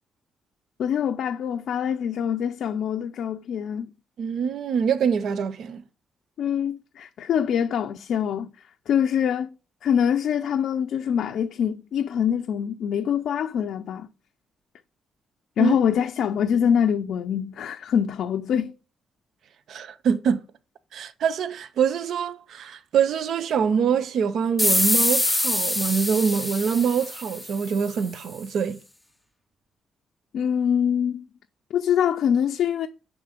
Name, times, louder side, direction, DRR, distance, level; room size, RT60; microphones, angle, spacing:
voice 1, 0.8-3.9 6.4-8.5 8.9-9.5 9.8-14.1 15.6-18.7 30.3-31.3 31.7-32.9, left 8 dB, 65° left, 0.4 m, -24 dB
voice 2, 4.2-5.8 15.6-15.8 19.7-20.4 20.9-28.8, right 7 dB, 60° right, 0.5 m, -24 dB
sound 1, 24.6-27.9, left 1 dB, 5° left, 0.4 m, -24 dB
6.7 x 3.7 x 5.0 m
cardioid pair, 175°, 0 cm